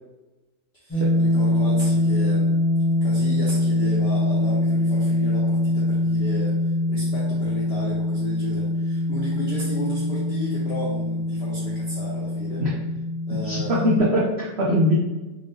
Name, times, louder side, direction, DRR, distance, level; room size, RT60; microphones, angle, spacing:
voice 1, 0.7-2.6 3.0-12.7 13.3-13.9, left 1 dB, 70° left, -6 dB, 0.6 m, -34 dB
sound 1, 0.9-14.0, left 1 dB, 10° left, 0.8 m, -23 dB
voice 2, 13.3-14.9, equal, 85° right, -5 dB, 0.5 m, -22 dB
3.5 x 2.6 x 3.5 m, 1.1 s
omnidirectional pair, 1.9 m